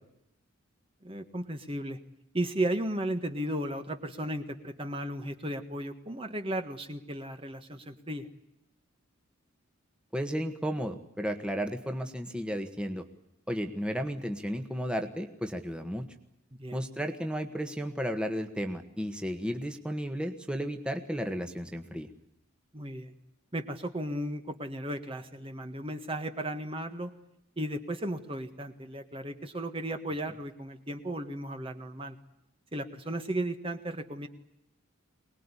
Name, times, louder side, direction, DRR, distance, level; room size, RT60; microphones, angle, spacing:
voice 1, 1.0-2.0 2.3-8.3 16.6-16.8 22.7-23.1 23.5-27.1 27.6-32.2 32.7-34.3, right 1 dB, 25° right, 7 dB, 1.6 m, -35 dB
voice 2, 10.1-13.0 13.5-16.1 16.7-22.1, equal, 5° right, 6 dB, 1.6 m, -33 dB
24.5 x 20.0 x 10.0 m, 0.84 s
head